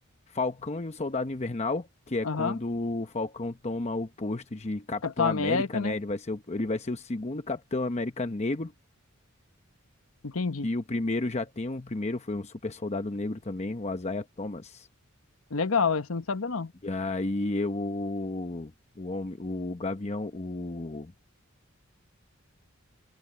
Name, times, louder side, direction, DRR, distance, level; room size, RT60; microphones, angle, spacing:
voice 1, 0.3-8.7 10.6-14.9 16.8-18.7 19.0-21.1, left 2 dB, 30° left, 0.8 m, -32 dB
voice 2, 2.2-2.6 5.0-6.0 10.2-10.7 15.5-16.7, left 5 dB, 85° left, 1.1 m, -28 dB
head